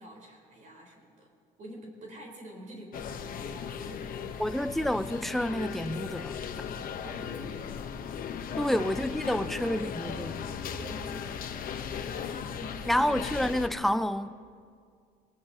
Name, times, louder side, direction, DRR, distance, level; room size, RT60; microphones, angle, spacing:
voice 1, 0.0-1.3 1.6-4.6 7.0-8.0 8.5-9.9 10.7-11.6 11.9-13.3, equal, 50° right, 4.4 m, -47 dB
sound 1, 2.9-13.7, left 7 dB, 55° left, 1.1 m, -37 dB
voice 2, 4.4-6.4 8.6-10.5 12.9-14.3, left 1 dB, ahead, 0.5 m, -29 dB
23.0 x 19.0 x 3.0 m
cardioid pair, 110°, 17 cm